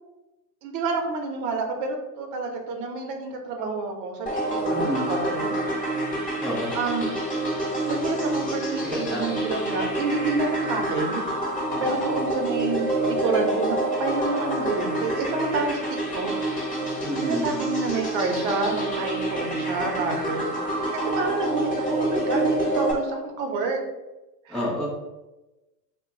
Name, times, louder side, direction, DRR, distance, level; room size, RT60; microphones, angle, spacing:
voice 1, 0.6-5.5 6.7-7.1 7.9-11.2 11.8-16.6 17.1-20.5 20.9-23.8 24.5-24.6, right 3 dB, 40° right, 3 dB, 0.8 m, -29 dB
sound 1, 4.3-22.9, right 1 dB, 15° left, 0.7 m, -27 dB
voice 2, 4.7-5.1 6.4-6.8 8.8-9.2 11.7-12.0 17.0-17.4 24.5-24.9, equal, ahead, -6 dB, 0.3 m, -29 dB
2.9 x 2.2 x 3.7 m, 1.0 s
hypercardioid pair, 105°, 50 cm